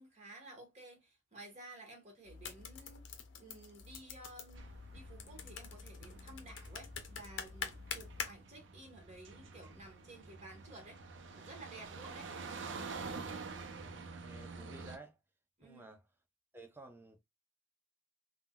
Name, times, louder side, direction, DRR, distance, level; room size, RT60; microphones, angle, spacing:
voice 1, 0.0-3.0 3.3-12.3 15.6-15.9, right 2 dB, 35° right, 1.3 m, -54 dB
sound 1, 2.2-8.3, left 6 dB, 70° left, 0.6 m, -46 dB
sound 2, 4.5-15.0, right 4 dB, 65° right, 0.5 m, -48 dB
voice 2, 13.7-15.2 15.6-16.0 16.5-17.2, right 2 dB, 10° right, 0.5 m, -54 dB
3.6 x 2.2 x 2.2 m
head